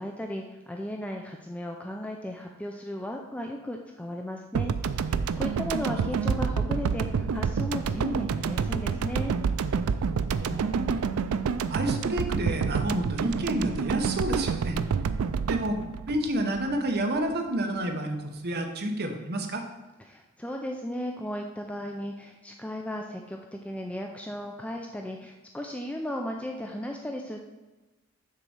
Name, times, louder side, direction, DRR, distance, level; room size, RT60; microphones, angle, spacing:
voice 1, 0.0-4.7 5.4-9.4 20.1-27.4, left 1 dB, 5° left, 2 dB, 0.4 m, -35 dB
sound 1, 4.6-17.0, right 6 dB, 90° right, 0.4 m, -28 dB
voice 2, 10.1-10.9 11.7-14.8 15.5-15.8 16.1-19.6, right 1 dB, 50° right, 4 dB, 0.9 m, -30 dB
6.6 x 4.1 x 6.3 m, 1.1 s
head